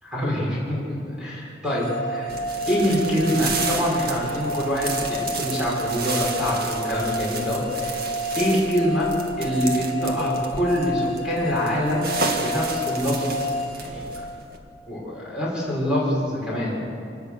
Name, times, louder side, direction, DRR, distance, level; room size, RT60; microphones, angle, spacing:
voice 1, 0.0-2.3 2.7-8.0 8.3-9.1 9.4-13.5 13.8-14.0 14.9-16.8, equal, 5° right, -6 dB, 6.4 m, -25 dB
sound 1, 1.7-14.6, equal, 30° left, 3.2 m, -30 dB
sound 2, 2.3-14.6, right 4 dB, 55° right, 2.0 m, -33 dB
25.0 x 19.5 x 6.7 m, 2.6 s
head